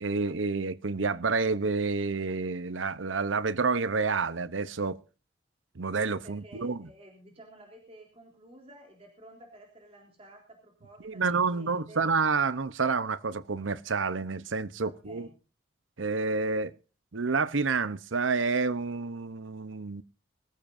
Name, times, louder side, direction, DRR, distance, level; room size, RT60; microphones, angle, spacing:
voice 1, 0.0-5.0 5.8-6.8 11.0-15.3 16.0-16.7 17.1-20.0, right 4 dB, 85° right, 0.8 m, -29 dB
voice 2, 6.2-12.0 14.8-15.3, right 1 dB, 30° right, 3.6 m, -53 dB
23.5 x 14.0 x 2.6 m
head